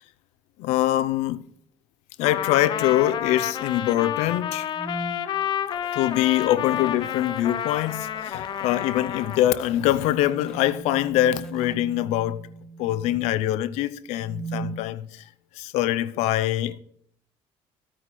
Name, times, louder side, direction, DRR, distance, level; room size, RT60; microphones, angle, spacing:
voice 1, 0.6-1.4 2.2-4.7 5.9-12.5 12.8-15.3 15.5-16.8, left 13 dB, 85° left, 0.6 m, -24 dB
Trumpet, 2.2-9.5, left 10 dB, 45° left, 0.8 m, -30 dB
sound 1, 4.7-5.2 6.5-7.0 9.2-13.4 14.1-14.8, right 4 dB, 70° right, 4.1 m, -39 dB
sound 2, 5.7-11.7, left 1 dB, 5° left, 1.1 m, -50 dB
13.5 x 9.0 x 4.2 m
cardioid pair, 145°, 11 cm